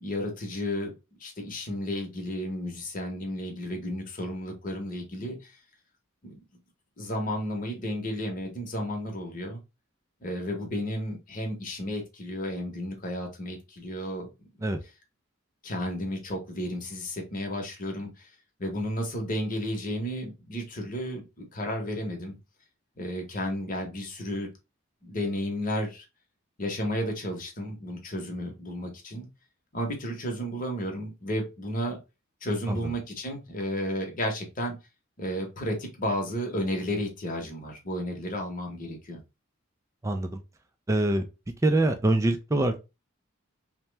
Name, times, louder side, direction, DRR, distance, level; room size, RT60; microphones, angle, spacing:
voice 1, 0.0-0.9 1.2-5.4 6.2-6.3 7.0-9.6 10.2-14.3 15.6-18.1 18.6-22.4 23.0-24.5 25.0-26.0 26.6-29.3 29.7-32.0 32.4-34.8 35.2-39.2, equal, 40° left, 0.9 m, -32 dB
voice 2, 40.0-40.4 40.9-41.3 41.6-42.8, right 2 dB, 15° right, 0.3 m, -24 dB
2.8 x 2.1 x 3.2 m
head